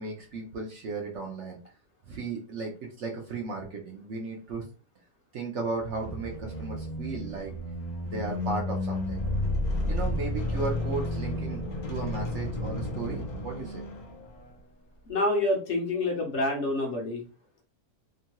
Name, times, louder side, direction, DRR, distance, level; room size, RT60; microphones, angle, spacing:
voice 1, 0.0-1.6 2.1-4.7 5.3-7.5 8.0-9.2 9.9-11.6 11.9-13.9, right 3 dB, 65° right, 1 dB, 0.8 m, -35 dB
sound 1, 5.8-14.5, left 1 dB, 85° left, 0.3 m, -32 dB
voice 2, 15.1-17.2, left 2 dB, 55° left, 0 dB, 0.9 m, -27 dB
2.9 x 2.2 x 2.8 m, 0.37 s
omnidirectional pair, 1.6 m